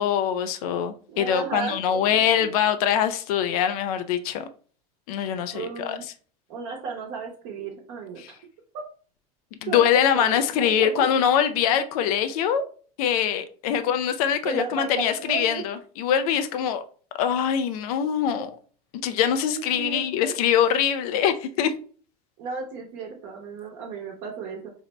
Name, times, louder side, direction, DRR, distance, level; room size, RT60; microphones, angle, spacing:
voice 1, 0.0-4.5 5.1-6.0 8.2-8.3 9.6-12.7 13.0-16.8 17.2-18.6 18.9-21.7, left 9 dB, 70° left, 0.4 m, -23 dB
voice 2, 1.1-2.5 5.5-6.0 6.5-8.3 8.7-8.8 9.7-11.1 14.4-15.6 18.3-18.5 19.5-20.3 22.4-24.7, right 5 dB, 60° right, 0.8 m, -34 dB
2.6 x 2.1 x 4.0 m
supercardioid pair, 115°, 20 cm